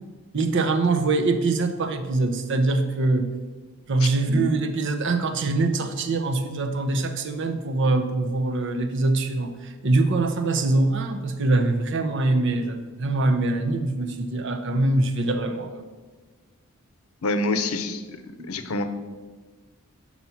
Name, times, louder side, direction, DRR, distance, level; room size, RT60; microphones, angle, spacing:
voice 1, 0.3-3.3 3.9-9.5 9.8-15.8, right 2 dB, 60° right, 7 dB, 0.6 m, -23 dB
voice 2, 17.2-18.0 18.5-18.9, left 2 dB, 90° left, 9 dB, 0.6 m, -26 dB
5.9 x 4.2 x 5.7 m, 1.3 s
head